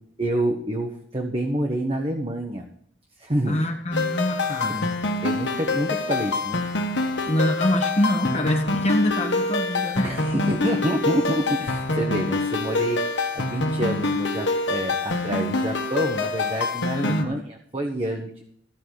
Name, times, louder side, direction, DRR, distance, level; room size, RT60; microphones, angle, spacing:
voice 1, 0.2-2.6 3.2-3.6 4.7-4.8 5.2-6.6 10.0-13.0 13.3-18.4, right 1 dB, 30° right, 3 dB, 1.1 m, -27 dB
voice 2, 3.5-5.0 7.3-10.2 17.0-17.5, left 1 dB, 35° left, 3 dB, 1.3 m, -25 dB
sound 1, 3.9-17.2, left 2 dB, 65° left, 1.5 m, -26 dB
14.5 x 5.5 x 6.5 m, 0.69 s
head